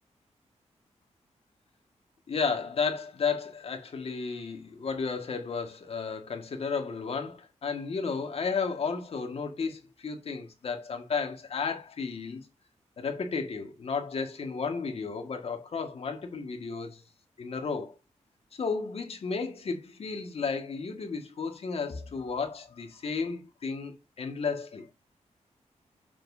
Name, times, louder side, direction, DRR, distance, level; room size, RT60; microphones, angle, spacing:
voice 1, 2.3-12.5 13.0-17.0 17.4-18.0 18.5-24.9, left 5 dB, 55° left, 1.9 m, -33 dB
7.4 x 7.4 x 2.8 m
wide cardioid pair, 165°, 12 cm